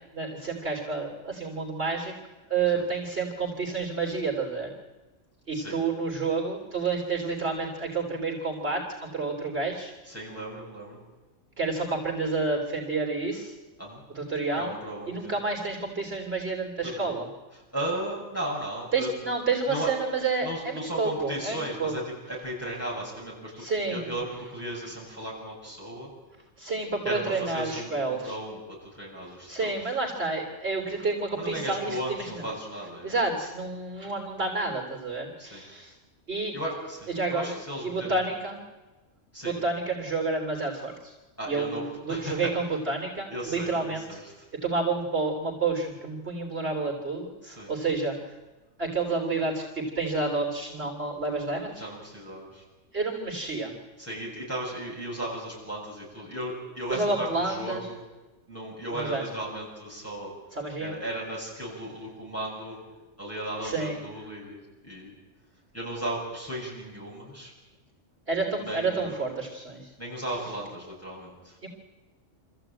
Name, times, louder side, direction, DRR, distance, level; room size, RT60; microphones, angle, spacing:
voice 1, 0.1-2.1 2.5-4.7 5.5-9.9 11.6-13.6 14.2-14.7 15.1-17.3 18.9-21.9 23.6-24.1 26.6-28.4 29.5-32.4 33.0-35.9 36.3-36.5 37.2-37.5 37.8-38.6 39.4-41.1 41.5-44.2 44.6-48.2 48.8-51.8 52.9-53.7 56.9-57.8 58.9-59.2 60.5-60.9 63.6-64.0 68.3-69.9 71.6-71.7, right 3 dB, 50° right, 1 dB, 3.5 m, -29 dB
voice 2, 10.1-11.0 13.8-14.0 14.6-15.4 16.8-17.1 17.5-19.1 19.7-19.9 20.4-26.1 27.0-30.0 31.4-33.2 35.4-35.6 36.5-38.2 39.3-39.5 41.4-42.5 43.3-44.5 47.4-47.7 51.8-52.6 54.0-58.0 58.5-60.3 60.8-62.8 63.2-65.2 65.7-67.5 68.6-69.2 70.0-71.7, right 1 dB, 10° left, -4 dB, 7.9 m, -36 dB
25.5 x 14.5 x 9.0 m, 1.1 s
omnidirectional pair, 1.3 m